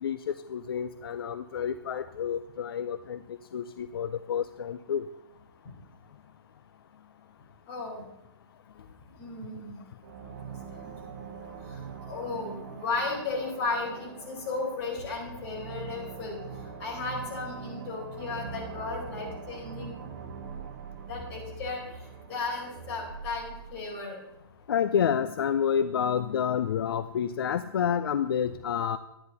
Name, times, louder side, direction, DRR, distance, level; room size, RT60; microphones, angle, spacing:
voice 1, 0.0-5.0 24.7-29.0, left 8 dB, 65° left, 12 dB, 0.5 m, -29 dB
voice 2, 7.7-8.0 9.2-9.8 10.5-11.1 12.0-20.0 21.0-22.0 22.3-24.2, left 3 dB, 30° left, -3 dB, 4.6 m, -35 dB
sound 1, 10.0-23.4, right 7 dB, 45° right, 1.0 m, -44 dB
sound 2, 18.4-23.8, right 5 dB, 75° right, 1.5 m, -45 dB
12.5 x 10.0 x 4.2 m, 0.87 s
hypercardioid pair, 165°, 13 cm